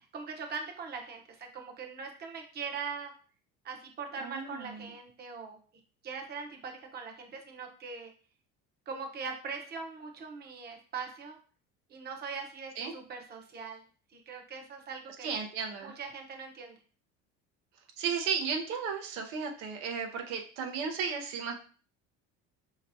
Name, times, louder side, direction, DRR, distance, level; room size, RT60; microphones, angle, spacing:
voice 1, 0.1-3.1 3.6-5.6 6.0-8.1 8.9-11.4 11.9-13.8 14.1-15.3 15.8-16.8, right 5 dB, 35° right, 2 dB, 0.9 m, -41 dB
voice 2, 4.1-4.9 12.8-12.9 15.2-16.0 18.0-21.5, right 6 dB, 80° right, 3 dB, 0.8 m, -34 dB
4.4 x 2.9 x 2.6 m, 0.40 s
cardioid pair, 115°, 29 cm